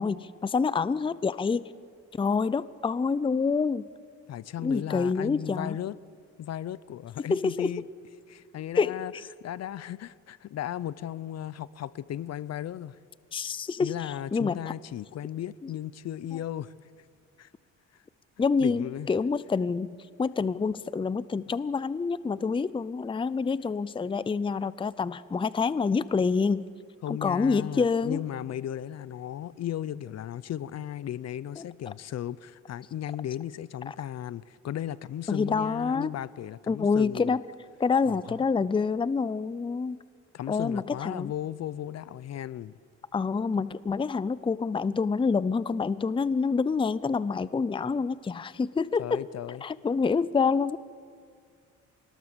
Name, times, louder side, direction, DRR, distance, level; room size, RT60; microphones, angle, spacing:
voice 1, 0.0-1.6 2.1-3.9 4.6-5.8 7.2-7.8 8.8-9.0 13.3-14.7 15.6-15.7 16.3-16.4 18.4-19.9 20.2-26.6 27.1-28.2 31.6-31.7 33.9-34.0 35.3-36.1 36.7-37.4 37.8-40.0 40.5-41.3 43.1-49.2 49.6-50.8, left 5 dB, 15° left, 0.5 m, -27 dB
voice 2, 4.3-6.0 6.4-7.9 8.3-9.1 9.4-13.0 13.8-16.7 17.4-17.5 18.6-19.1 27.0-37.4 38.1-38.4 40.3-42.8 49.0-49.6, left 11 dB, 60° left, 0.7 m, -36 dB
25.5 x 20.0 x 6.8 m
cardioid pair, 90°, 30 cm